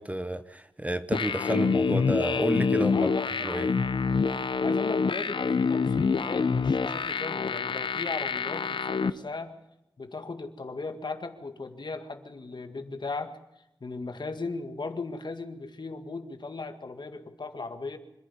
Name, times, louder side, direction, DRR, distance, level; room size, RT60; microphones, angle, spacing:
voice 1, 0.0-3.1 3.4-3.7, right 1 dB, 15° right, 1.1 m, -30 dB
sound 1, 1.1-9.1, left 5 dB, 90° left, 0.8 m, -26 dB
voice 2, 2.9-3.5 4.6-9.6 10.0-13.4 13.8-18.0, left 3 dB, 65° left, 2.0 m, -37 dB
25.5 x 11.0 x 10.0 m
wide cardioid pair, 75°, 8 cm